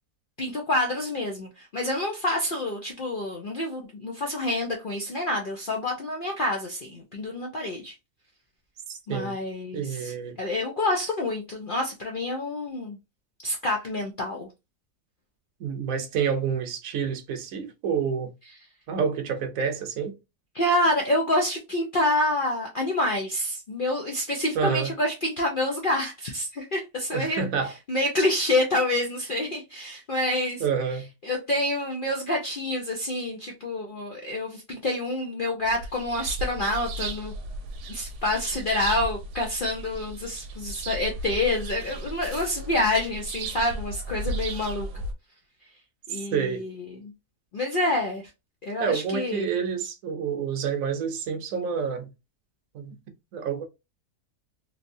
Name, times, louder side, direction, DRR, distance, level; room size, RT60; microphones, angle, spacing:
voice 1, 0.4-7.9 9.1-13.0 13.4-14.5 20.5-27.5 27.9-30.6 31.2-37.3 37.9-44.9 46.1-47.1 47.5-48.3 48.6-49.5, left 1 dB, 70° left, 0.5 m, -27 dB
voice 2, 8.9-9.4 9.7-10.4 15.6-18.3 18.9-20.1 24.5-24.9 27.1-27.7 30.6-31.1 46.3-46.6 48.8-52.1 52.7-52.9 53.3-53.6, right 6 dB, 65° right, 1.0 m, -28 dB
sound 1, 35.6-45.1, right 2 dB, 80° right, 1.2 m, -35 dB
3.3 x 2.7 x 2.6 m
omnidirectional pair, 1.7 m